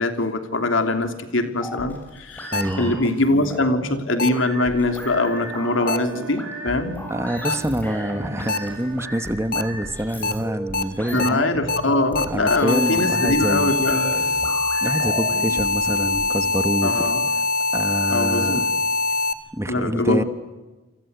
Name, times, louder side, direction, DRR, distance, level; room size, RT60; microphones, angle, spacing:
voice 1, 0.0-7.0 11.1-14.1 16.8-17.2 18.1-18.7 19.7-20.2, left 2 dB, 70° left, 7 dB, 3.1 m, -22 dB
sound 1, 1.6-16.3, equal, 10° left, 7.6 m, -35 dB
sound 2, 2.5-2.6 4.2-4.3 5.9-6.0 7.4-7.5 8.5-8.6 9.5-9.6 10.2-10.3 10.7-10.8 11.2-11.3 11.7-11.8 12.2-19.3, left 3 dB, 50° left, 1.8 m, -23 dB
voice 2, 2.5-3.0 7.1-11.4 12.3-13.8 14.8-17.1 17.7-18.7 19.5-20.2, right 1 dB, 15° right, 11 dB, 1.2 m, -26 dB
Wind instrument woodwind instrument, 4.6-9.3, right 5 dB, 90° right, 4.1 m, -40 dB
29.0 x 24.0 x 8.2 m, 1.2 s
head